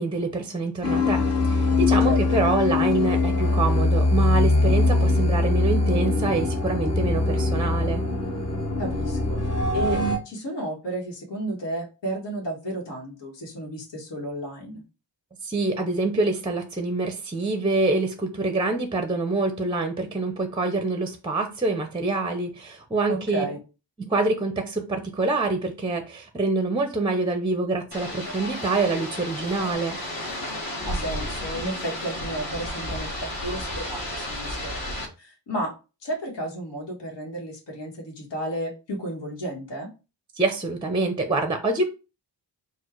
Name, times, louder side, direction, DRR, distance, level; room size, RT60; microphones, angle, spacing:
voice 1, 0.0-8.0 15.4-23.4 24.0-30.0 40.4-41.9, right 3 dB, 10° right, 0.5 m, -26 dB
sound 1, 0.8-10.2, left 2 dB, 35° left, 1.0 m, -22 dB
voice 2, 8.8-14.8 23.1-23.6 30.8-35.7 36.0-39.9, right 1 dB, 80° left, 1.6 m, -33 dB
sound 2, 27.9-35.1, left 1 dB, 55° left, 1.6 m, -32 dB
4.4 x 2.4 x 4.4 m
wide cardioid pair, 160°, 42 cm